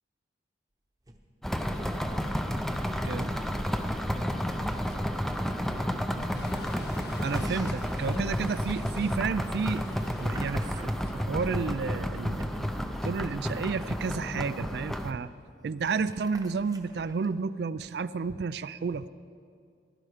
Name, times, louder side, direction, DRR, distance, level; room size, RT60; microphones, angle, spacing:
sound 1, 1.0-1.2 1.6-2.4 2.6-2.9 3.4-5.2 6.8-11.6 12.0-14.7 15.0-15.1 15.3-17.3, right 2 dB, 20° right, 0.9 m, -51 dB
sound 2, 1.4-15.1, equal, ahead, 0.5 m, -31 dB
voice 1, 3.0-3.3 7.2-9.8 10.2-15.3 15.6-19.1, right 5 dB, 60° right, 15 dB, 0.4 m, -31 dB
sound 3, 4.9-12.6, left 2 dB, 60° left, 1.0 m, -49 dB
16.5 x 11.0 x 5.0 m, 2.3 s
head